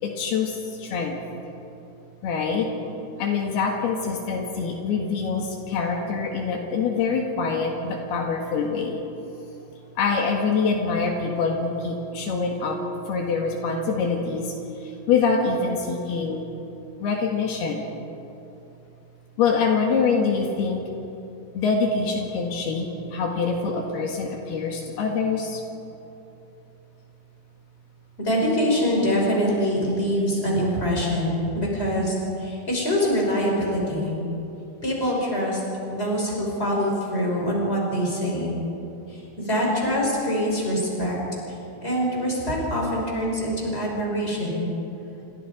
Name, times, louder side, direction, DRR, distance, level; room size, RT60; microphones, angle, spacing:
voice 1, 0.0-1.2 2.2-2.7 3.2-9.0 10.0-12.8 13.1-14.6 14.8-16.5 17.0-17.9 19.4-20.8 21.5-25.6, left 5 dB, 75° left, 1 dB, 3.8 m, -25 dB
voice 2, 28.2-34.1 34.8-35.6 35.9-38.5 39.1-41.1 41.5-41.6 41.8-44.7, equal, 15° left, -2 dB, 6.0 m, -24 dB
28.0 x 25.0 x 5.2 m, 2.9 s
omnidirectional pair, 4.6 m